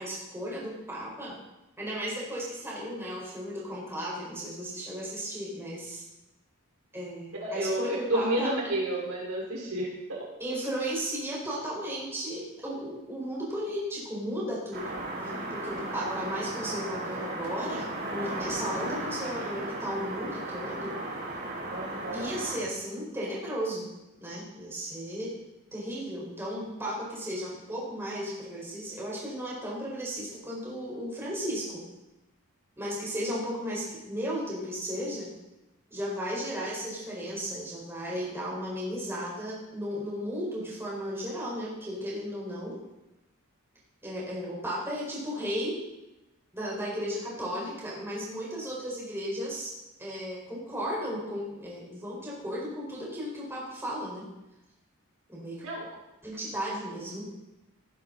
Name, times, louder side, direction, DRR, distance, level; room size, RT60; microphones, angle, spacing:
voice 1, 0.0-1.4 1.8-6.0 6.9-8.5 10.4-21.0 22.1-23.9 24.2-25.3 25.7-31.8 32.8-35.3 35.9-42.8 44.0-45.8 46.5-49.7 50.0-54.3 55.3-55.6 56.2-57.3, equal, 10° right, -5 dB, 4.8 m, -35 dB
voice 2, 7.4-10.2 16.0-16.4 21.7-22.3 55.6-55.8, right 1 dB, 75° right, -2 dB, 4.4 m, -31 dB
sound 1, 14.7-22.6, right 2 dB, 50° right, 4.7 m, -35 dB
18.5 x 10.5 x 4.0 m, 0.97 s
head